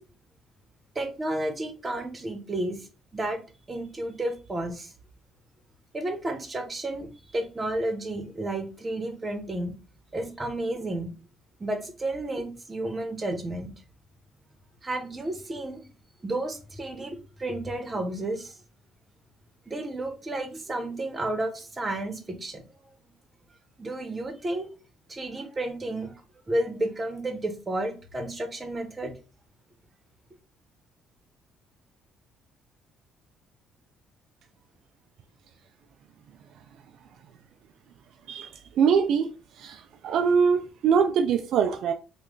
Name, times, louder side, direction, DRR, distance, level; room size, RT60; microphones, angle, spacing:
voice 1, 0.9-2.9 3.1-3.4 3.7-4.9 5.9-9.8 10.1-11.1 11.6-13.7 14.8-15.8 16.2-18.6 19.7-22.6 23.8-24.7 25.1-26.1 26.5-29.1, right 1 dB, 25° right, 1.0 m, -32 dB
voice 2, 38.8-39.3 39.6-41.9, right 6 dB, 70° right, 0.3 m, -23 dB
3.1 x 2.3 x 3.7 m
supercardioid pair, 80°, 0 cm